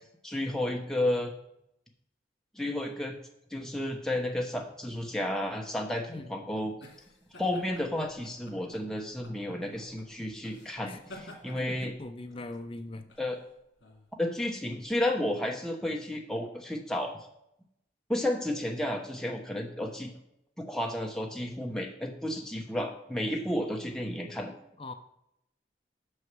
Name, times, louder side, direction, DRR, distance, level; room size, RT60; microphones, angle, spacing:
voice 1, 0.2-1.3 2.5-3.2 3.5-6.7 7.4-11.9 13.2-13.4 14.2-17.1 18.1-20.1 20.6-24.5, left 1 dB, 5° left, 1 dB, 0.9 m, -32 dB
sound 1, 6.8-14.9, left 1 dB, 80° left, 2.1 m, -53 dB
voice 2, 11.5-13.1 24.8-24.9, left 2 dB, 30° left, 8 dB, 0.5 m, -41 dB
6.4 x 6.2 x 6.0 m, 0.81 s
head